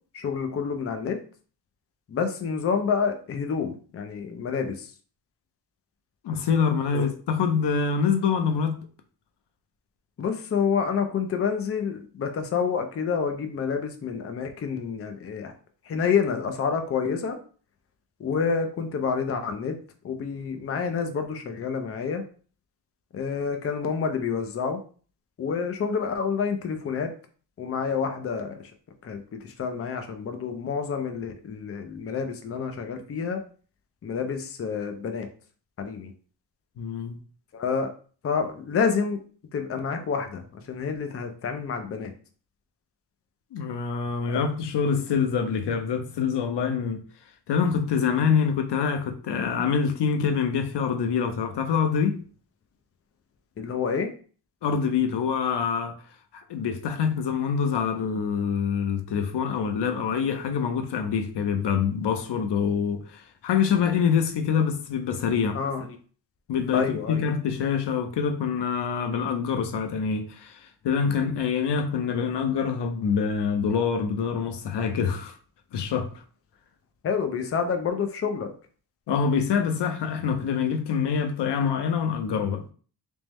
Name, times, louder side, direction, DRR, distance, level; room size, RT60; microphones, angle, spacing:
voice 1, 0.1-1.2 2.1-4.9 6.9-7.1 10.2-15.5 15.9-17.4 18.2-19.8 20.0-22.2 23.1-24.8 25.4-27.1 27.6-28.6 29.0-33.4 34.0-35.3 35.8-36.1 37.5-37.9 38.2-39.2 39.5-42.1 44.3-44.4 53.6-54.1 65.5-65.9 66.7-67.3 77.0-78.5, left 6 dB, 35° left, 0.5 m, -28 dB
voice 2, 6.2-8.8 36.8-37.2 43.5-47.0 47.5-52.2 54.6-56.0 56.5-65.6 66.5-70.6 70.8-75.3 75.7-76.1 79.1-82.6, left 6 dB, 90° left, 0.7 m, -25 dB
3.5 x 3.1 x 3.0 m
wide cardioid pair, 175°, 40 cm